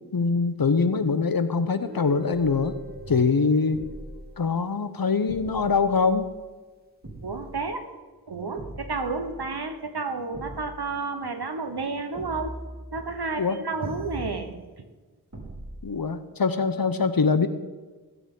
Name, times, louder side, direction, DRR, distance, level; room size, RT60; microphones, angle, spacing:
voice 1, 0.1-2.7 3.1-3.8 4.4-6.3 13.4-13.6 15.8-17.5, left 4 dB, 65° left, 11 dB, 0.8 m, -23 dB
Guitar, 1.8-5.7, left 1 dB, 25° right, 1.6 m, -44 dB
sound 1, 3.7-4.3 5.3-6.3 7.0-7.6 8.6-9.6 10.3-10.9 12.1-13.3 13.8-14.5 15.3-15.9, equal, 45° right, 2.9 m, -41 dB
voice 2, 7.2-7.8 8.3-12.5 12.9-14.5, right 4 dB, 80° right, 7 dB, 1.1 m, -31 dB
16.0 x 8.0 x 3.8 m, 1.3 s
wide cardioid pair, 45°, 39 cm